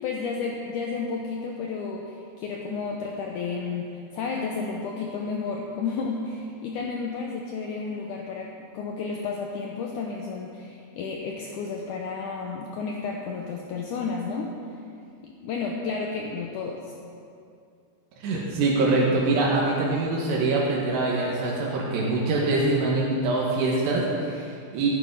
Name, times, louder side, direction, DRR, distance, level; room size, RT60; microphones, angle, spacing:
voice 1, 0.0-14.5 15.4-16.9, left 4 dB, 85° left, 0 dB, 1.8 m, -32 dB
voice 2, 18.2-24.9, right 2 dB, 85° right, -4 dB, 3.6 m, -24 dB
15.0 x 10.5 x 4.8 m, 2.4 s
omnidirectional pair, 4.8 m